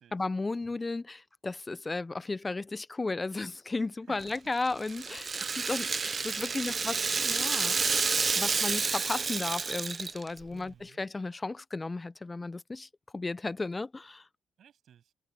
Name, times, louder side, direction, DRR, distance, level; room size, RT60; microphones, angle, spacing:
voice 1, 0.1-5.2 5.7-5.9 6.2-7.8 8.4-12.9 13.1-14.2, left 3 dB, 20° left, 0.6 m, -34 dB
Rattle (instrument), 4.2-10.4, right 4 dB, 35° right, 0.4 m, -30 dB
voice 2, 4.8-7.3 10.5-11.0 14.6-15.1, right 9 dB, 65° right, 7.4 m, -58 dB
cardioid pair, 90°, 0 cm